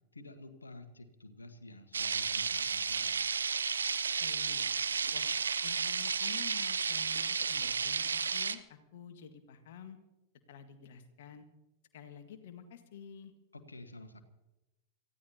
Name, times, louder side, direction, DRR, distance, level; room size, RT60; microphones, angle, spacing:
voice 1, 0.1-3.3 13.5-14.2, left 2 dB, 80° left, 8 dB, 1.5 m, -50 dB
sound 1, 1.9-8.6, right 5 dB, 75° right, 0.6 m, -32 dB
voice 2, 4.2-4.7 5.1-5.3 5.6-10.0 10.5-11.5 11.9-13.3, left 7 dB, 55° left, 8 dB, 1.7 m, -50 dB
28.5 x 15.5 x 2.9 m, 0.99 s
figure-of-eight pair, 90°, 0 cm